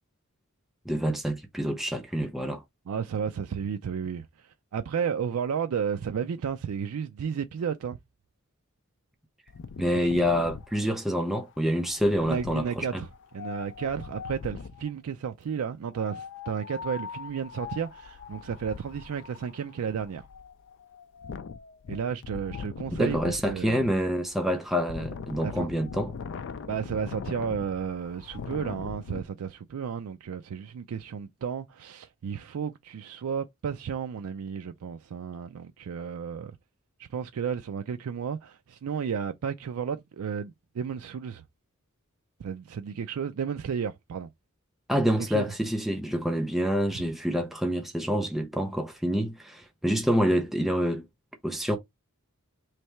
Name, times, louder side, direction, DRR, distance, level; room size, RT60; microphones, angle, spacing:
voice 1, 0.9-2.6 9.8-13.0 23.0-26.1 44.9-51.0 51.4-51.8, equal, ahead, 0.5 m, -27 dB
voice 2, 2.9-8.0 9.9-10.1 12.2-13.1 13.3-20.2 21.9-23.9 25.4-25.7 26.7-36.6 37.0-41.4 42.4-44.3 45.2-45.5, right 7 dB, 80° right, 0.4 m, -33 dB
Wind, 9.5-14.9 16.0-29.2, left 5 dB, 60° left, 0.4 m, -41 dB
3.3 x 2.7 x 4.4 m
head